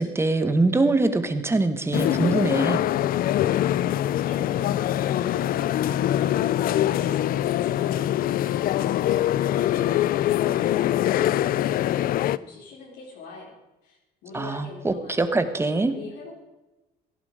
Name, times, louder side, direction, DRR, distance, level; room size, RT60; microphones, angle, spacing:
voice 1, 0.0-2.8 14.3-15.9, right 2 dB, 15° right, 10 dB, 1.4 m, -23 dB
sound 1, 1.9-12.4, left 12 dB, 60° left, 0.5 m, -23 dB
voice 2, 4.0-13.5 13.8-14.0 14.2-15.4 15.7-16.4, left 4 dB, 80° left, -3 dB, 3.5 m, -43 dB
16.5 x 11.0 x 5.1 m, 1.0 s
cardioid pair, 110°, 17 cm